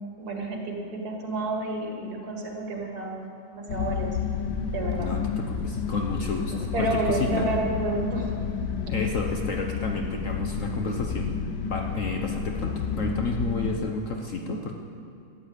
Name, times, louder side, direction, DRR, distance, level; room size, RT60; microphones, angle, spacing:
voice 1, 0.2-4.1 4.7-5.1 6.5-8.4, right 2 dB, 60° right, 1 dB, 2.4 m, -30 dB
sound 1, 3.7-13.8, left 6 dB, 80° left, 1.4 m, -30 dB
voice 2, 5.5-6.9 7.3-7.5 8.9-11.3 11.7-14.7, left 3 dB, 55° left, 2 dB, 1.2 m, -31 dB
13.0 x 9.4 x 7.9 m, 2.7 s
omnidirectional pair, 1.9 m